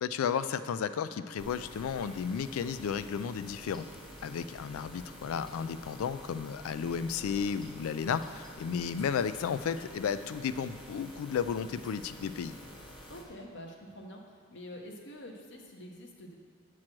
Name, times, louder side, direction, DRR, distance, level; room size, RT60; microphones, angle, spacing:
voice 1, 0.0-3.9 4.2-12.6, left 7 dB, 85° left, 12 dB, 0.3 m, -33 dB
sound 1, 1.4-13.2, equal, 25° left, 0.9 m, -49 dB
voice 2, 13.1-16.3, left 1 dB, 60° left, 1 dB, 0.9 m, -47 dB
8.7 x 3.1 x 5.9 m, 2.3 s
head